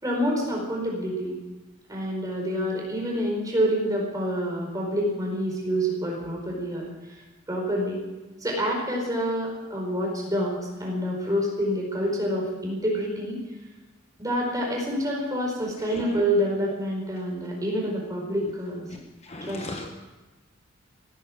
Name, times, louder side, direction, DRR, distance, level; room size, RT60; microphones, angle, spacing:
voice 1, 0.0-1.3 1.9-6.8 7.5-8.0 8.4-13.4 14.2-18.8 19.4-19.6, equal, 15° right, -1 dB, 4.8 m, -27 dB
voice 2, 19.3-19.9, left 2 dB, 30° left, 3 dB, 1.1 m, -36 dB
17.5 x 10.0 x 7.6 m, 1.2 s
head